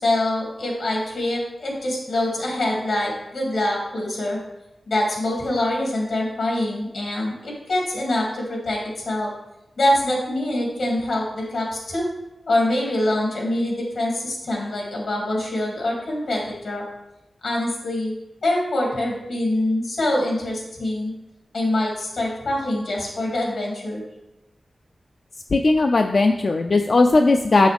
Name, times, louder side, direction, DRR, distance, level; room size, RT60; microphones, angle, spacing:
voice 1, 0.0-4.4 4.9-8.8 9.0-9.3 9.8-12.1 12.5-16.8 17.4-18.1 18.4-21.1 21.5-24.0, left 1 dB, 90° left, -2 dB, 2.3 m, -24 dB
voice 2, 25.5-27.7, left 3 dB, 55° left, 4 dB, 0.3 m, -17 dB
6.7 x 6.2 x 3.4 m, 0.92 s
wide cardioid pair, 80°, 0 cm